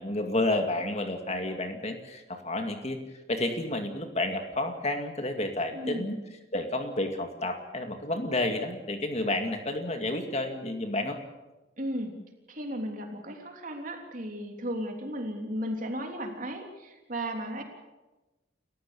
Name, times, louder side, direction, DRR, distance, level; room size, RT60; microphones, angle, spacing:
voice 1, 0.0-3.0 3.3-6.2 6.5-11.2, left 2 dB, 35° left, 5 dB, 2.2 m, -30 dB
voice 2, 5.7-6.2 11.8-12.1 12.5-17.6, equal, 45° right, 3 dB, 3.3 m, -35 dB
29.0 x 15.0 x 7.1 m, 1.1 s
head